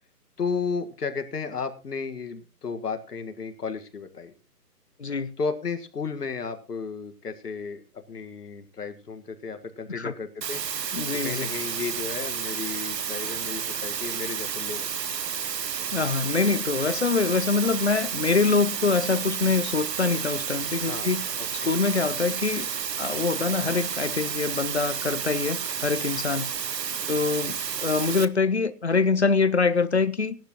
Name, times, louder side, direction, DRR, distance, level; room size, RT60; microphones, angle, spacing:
voice 1, 0.4-4.3 5.4-10.6 11.1-14.9 20.8-21.1 21.4-21.7 27.4-27.5, left 5 dB, 70° left, 1.9 m, -33 dB
voice 2, 5.0-5.3 10.0-10.1 10.9-11.5 15.9-21.2 21.6-22.7 23.0-26.5 27.1-30.4, left 4 dB, 45° left, 0.6 m, -24 dB
sound 1, 10.4-28.3, right 7 dB, 85° right, 1.1 m, -31 dB
17.5 x 11.5 x 3.0 m
hypercardioid pair, 180°, 48 cm